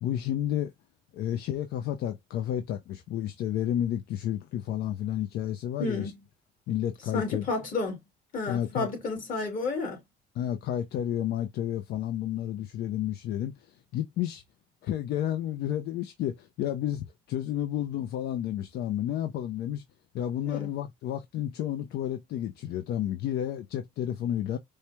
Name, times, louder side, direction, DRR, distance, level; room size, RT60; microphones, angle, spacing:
voice 1, 0.0-0.7 1.1-6.1 6.7-7.4 8.5-8.9 10.4-14.4 14.8-19.8 20.1-24.6, left 11 dB, 75° left, 0.5 m, -31 dB
voice 2, 5.8-6.1 7.1-8.0 8.3-10.0 20.5-20.7, left 3 dB, 50° left, 2.4 m, -31 dB
4.7 x 2.2 x 2.9 m
cardioid pair, 110°, 17 cm